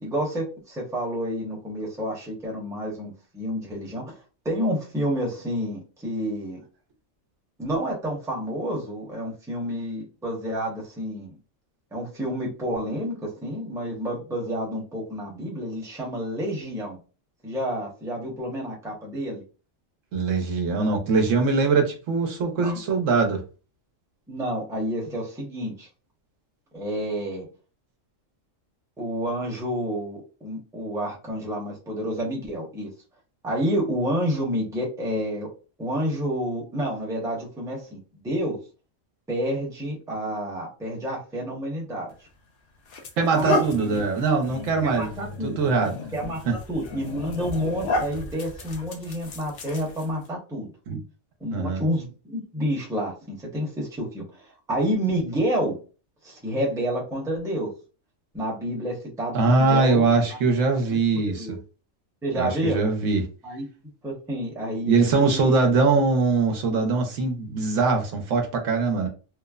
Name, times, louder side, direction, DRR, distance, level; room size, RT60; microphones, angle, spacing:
voice 1, 0.0-4.1 4.4-6.6 7.6-11.3 11.9-17.0 17.4-19.4 22.6-22.8 24.3-25.9 26.7-27.5 29.0-32.9 33.4-35.5 35.8-38.6 39.3-42.1 43.3-44.0 44.8-45.6 46.1-50.7 51.4-54.2 54.7-55.8 56.2-57.7 58.3-60.4 60.9-61.0 61.3-61.6 62.2-62.8 63.4-63.7 64.0-65.5, equal, 5° right, 0.6 m, -29 dB
voice 2, 20.1-23.4 43.2-45.1 45.4-45.9 46.5-46.6 50.9-51.0 51.5-51.9 59.3-61.6 62.3-63.3 64.9-69.1, right 4 dB, 75° right, 1.0 m, -22 dB
sound 1, 42.1-42.3 42.9-50.3, left 2 dB, 55° left, 0.7 m, -32 dB
3.1 x 2.0 x 2.3 m
omnidirectional pair, 1.4 m